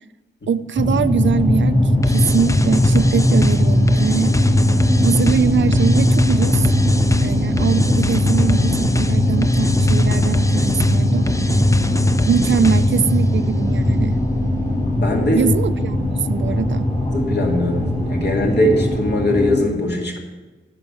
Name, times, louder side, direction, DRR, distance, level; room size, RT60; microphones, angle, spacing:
voice 1, 0.5-4.4 5.0-6.7 7.2-11.3 12.3-14.2 15.3-16.9, right 7 dB, 70° right, 13 dB, 0.5 m, -22 dB
sound 1, 0.8-19.6, left 1 dB, 35° left, 3.5 m, -18 dB
sound 2, 2.0-13.1, left 2 dB, 15° left, 0.5 m, -26 dB
voice 2, 15.0-15.4 17.1-20.2, left 1 dB, 60° left, 0 dB, 2.4 m, -20 dB
10.5 x 6.0 x 7.8 m, 1.2 s
cardioid pair, 65°, 20 cm